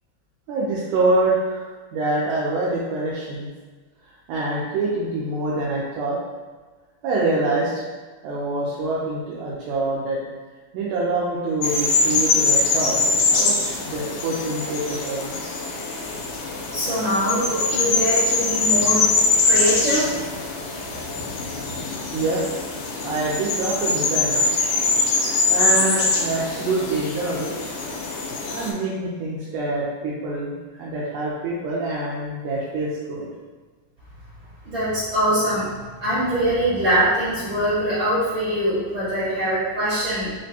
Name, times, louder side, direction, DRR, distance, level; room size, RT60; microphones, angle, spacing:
voice 1, 0.5-3.5 4.3-6.2 7.0-7.8 8.2-10.2 10.7-13.0 13.3-15.4 22.1-22.4 23.0-24.5 25.5-27.7 28.5-33.3, right 2 dB, 80° right, -6 dB, 1.9 m, -25 dB
sound 1, 11.6-28.7, left 3 dB, 90° left, 2.2 m, -23 dB
voice 2, 16.7-19.1 19.4-20.1 34.6-40.3, equal, 55° right, -13 dB, 1.6 m, -23 dB
5.0 x 2.2 x 2.7 m, 1.4 s
omnidirectional pair, 3.6 m